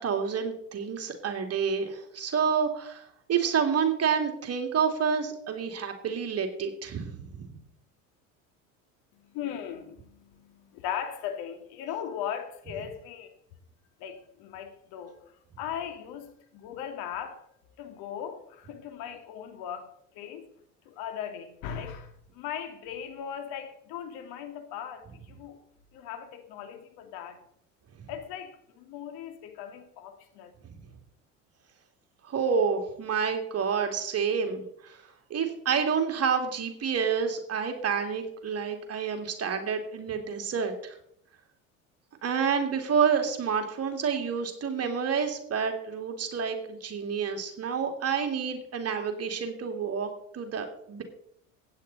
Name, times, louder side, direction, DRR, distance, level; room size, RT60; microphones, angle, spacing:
voice 1, 0.0-7.5 30.6-30.7 32.3-35.0 35.3-40.9 42.2-51.0, right 6 dB, 40° right, 2.6 m, -29 dB
voice 2, 9.1-13.4 14.0-17.4 17.8-20.5 20.8-25.6 25.9-27.4 28.1-30.5, left 9 dB, 65° left, 2.6 m, -38 dB
15.5 x 9.8 x 4.1 m
hypercardioid pair, 80°, 40 cm